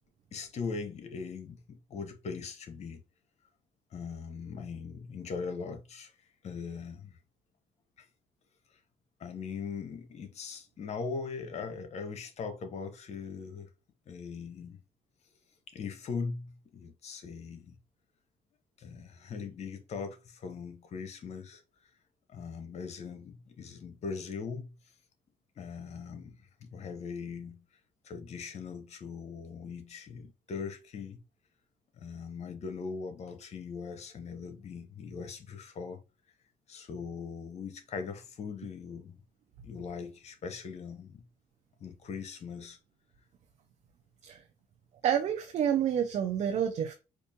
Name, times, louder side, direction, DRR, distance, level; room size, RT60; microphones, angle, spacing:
voice 1, 0.3-3.0 3.9-6.1 6.4-7.2 8.0-8.1 9.2-13.7 14.1-14.8 15.7-17.7 18.8-21.6 22.3-24.7 25.6-27.6 28.0-31.2 31.9-36.0 36.7-39.2 39.6-41.2 41.8-42.8, left 5 dB, 55° left, 0.9 m, -40 dB
voice 2, 45.0-46.9, right 9 dB, 60° right, 0.6 m, -28 dB
4.4 x 2.4 x 2.8 m
supercardioid pair, 75°, 13 cm